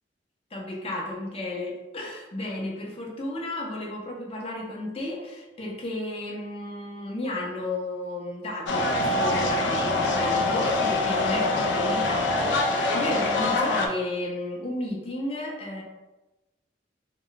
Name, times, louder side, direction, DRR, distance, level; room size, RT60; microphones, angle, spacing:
voice 1, 0.5-15.8, left 2 dB, 35° left, -1 dB, 0.6 m, -33 dB
sound 1, 8.7-13.9, left 2 dB, 85° left, 0.4 m, -24 dB
2.2 x 2.1 x 3.8 m, 1.1 s
head